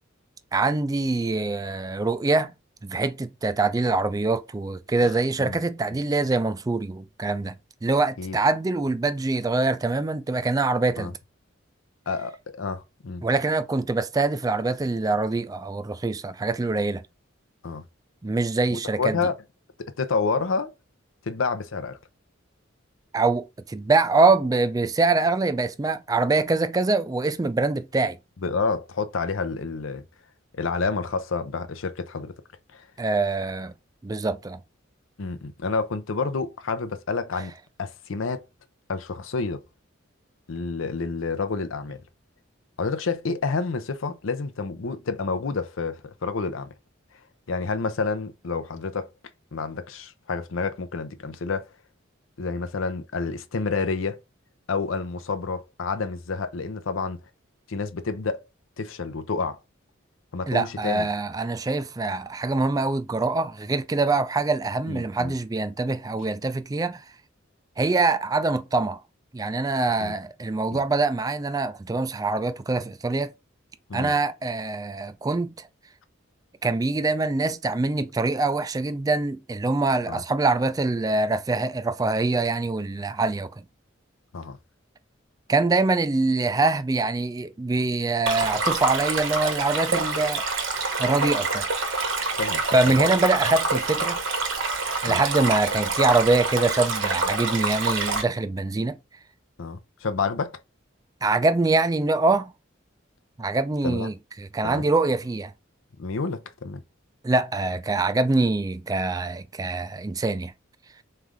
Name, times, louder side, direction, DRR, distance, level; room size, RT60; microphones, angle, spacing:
voice 1, 0.5-2.5 2.8-7.6 7.8-11.1 13.2-17.0 18.2-19.2 23.1-28.2 33.0-33.7 34.0-34.6 60.5-67.0 67.8-69.0 69.3-73.3 73.9-75.7 76.6-83.6 85.5-90.4 91.0-91.7 92.7-94.2 95.0-99.0 101.2-102.5 103.4-105.5 107.2-110.5, right 3 dB, 20° right, 0.3 m, -24 dB
voice 2, 12.1-13.2 17.6-17.8 18.7-19.4 19.8-20.7 21.3-22.0 28.4-30.0 30.5-32.3 32.7-32.8 35.2-37.5 37.8-38.4 38.9-39.6 40.5-42.0 42.8-46.7 47.5-49.1 49.5-51.7 52.4-54.2 54.7-57.2 57.7-58.4 58.8-59.6 60.3-61.1 64.9-65.3 70.0-70.1 70.7-70.8 73.9-74.1 80.1-80.2 84.3-84.6 92.4-92.9 95.1-95.2 99.6-100.6 103.8-104.1 104.6-104.8 106.0-106.8, left 4 dB, 90° left, 0.6 m, -29 dB
Stream, 88.3-98.2, right 3 dB, 70° right, 1.1 m, -26 dB
3.7 x 3.3 x 3.6 m
head